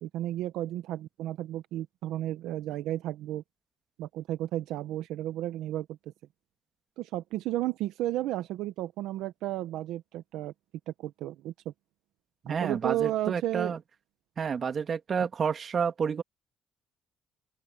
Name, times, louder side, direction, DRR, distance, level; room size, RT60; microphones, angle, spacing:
voice 1, 0.0-3.4 4.0-6.0 7.0-10.5 10.9-11.7 12.5-13.8, right 14 dB, 85° right, 0.8 m, -33 dB
voice 2, 12.4-13.8 14.4-16.2, right 6 dB, 50° right, 2.1 m, -30 dB
open air
cardioid pair, 75°, 0 cm